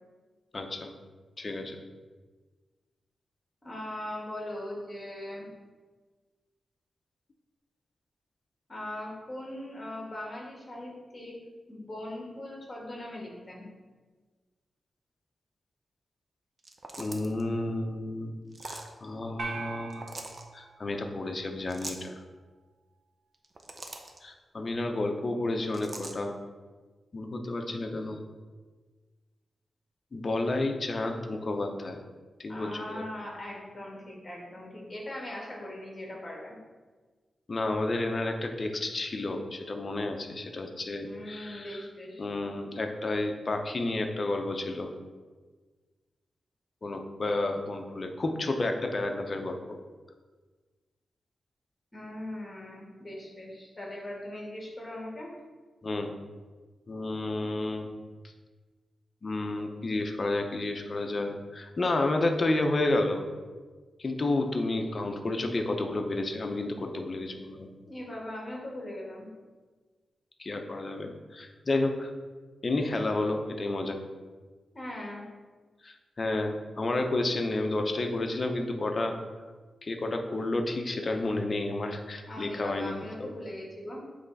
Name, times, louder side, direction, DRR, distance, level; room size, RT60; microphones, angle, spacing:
voice 1, 0.5-0.9 1.4-1.8 17.0-18.4 18.6-20.0 20.5-22.2 24.2-26.4 27.1-28.2 30.1-32.0 32.4-33.1 37.5-41.8 42.2-44.9 46.8-49.8 55.8-56.1 56.9-57.9 59.2-63.2 64.0-67.7 70.4-72.1 72.6-74.0 75.8-79.2 79.8-82.9 83.2-83.3, left 2 dB, 40° left, 4 dB, 0.7 m, -31 dB
voice 2, 3.6-5.5 8.7-11.4 11.7-13.7 32.5-36.6 41.0-42.3 51.9-55.3 67.9-69.3 74.7-75.2 82.3-84.0, left 1 dB, 25° left, -2 dB, 1.8 m, -40 dB
sound 1, 16.6-17.4 18.5-18.9 19.9-20.4 21.7-22.1 23.3-24.2 25.7-26.2, right 2 dB, 35° right, 0.7 m, -42 dB
sound 2, 19.4-21.9, right 3 dB, 70° right, 0.8 m, -42 dB
7.7 x 3.3 x 4.0 m, 1.4 s
wide cardioid pair, 100°, 0 cm